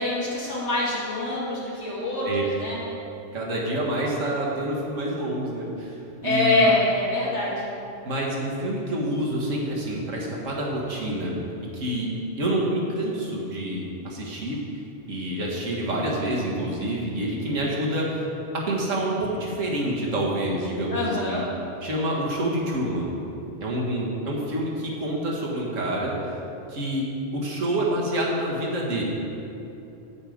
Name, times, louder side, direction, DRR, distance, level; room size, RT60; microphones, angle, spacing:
voice 1, 0.0-2.8 6.2-7.6 20.9-21.4, left 2 dB, 65° left, -6 dB, 2.5 m, -24 dB
voice 2, 3.3-6.0 6.2-6.7 8.0-11.4 11.7-12.1 12.4-14.6 15.1-18.2 18.5-21.4 21.8-23.1 23.6-26.1 26.7-27.0 27.3-29.0, right 1 dB, 90° right, -3 dB, 1.8 m, -27 dB
8.6 x 7.2 x 5.1 m, 2.9 s
omnidirectional pair, 1.3 m